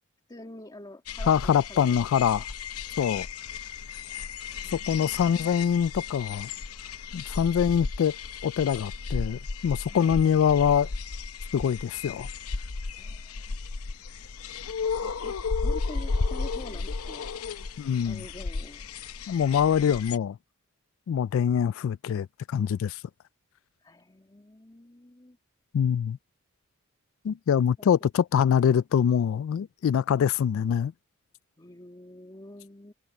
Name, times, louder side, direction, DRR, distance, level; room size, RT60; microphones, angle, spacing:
voice 1, 0.3-2.4 4.6-5.5 9.9-10.2 12.9-13.6 15.0-17.3 18.0-18.8 23.8-25.4 27.8-28.1 31.6-32.9, left 1 dB, 20° left, 2.0 m, -47 dB
sound 1, 1.1-20.2, left 4 dB, 80° left, 0.8 m, -34 dB
voice 2, 1.3-2.5 3.0-3.3 4.7-6.5 7.1-8.2 8.4-10.9 11.5-12.3 17.8-18.2 19.3-20.4 21.1-23.0 25.7-26.2 27.2-30.9, left 8 dB, 65° left, 0.3 m, -24 dB
head